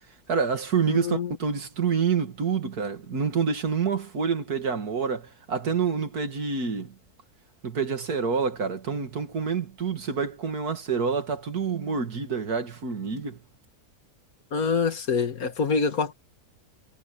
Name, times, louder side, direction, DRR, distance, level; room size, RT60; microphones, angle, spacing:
voice 1, 0.3-6.9 7.6-13.4, right 6 dB, 90° right, 2.6 m, -27 dB
voice 2, 0.9-1.3 14.5-16.1, left 5 dB, 75° left, 2.2 m, -25 dB
omnidirectional pair, 1.6 m